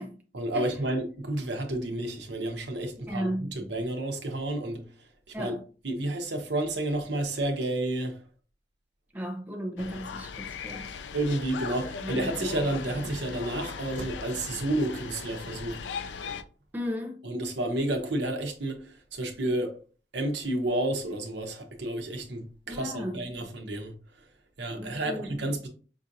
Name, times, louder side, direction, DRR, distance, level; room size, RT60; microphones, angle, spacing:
voice 1, 0.3-4.8 5.4-5.6 5.8-8.2 11.1-15.8 17.2-19.7 20.1-23.9 24.6-25.7, right 1 dB, 75° right, 0.8 m, -30 dB
voice 2, 3.1-3.5 5.3-5.6 9.1-10.9 12.0-12.5 16.7-17.3 22.7-23.3 24.8-25.4, equal, 10° right, 0.5 m, -35 dB
sound 1, 9.8-16.4, left 5 dB, 80° left, 0.4 m, -38 dB
5.4 x 2.5 x 2.6 m
head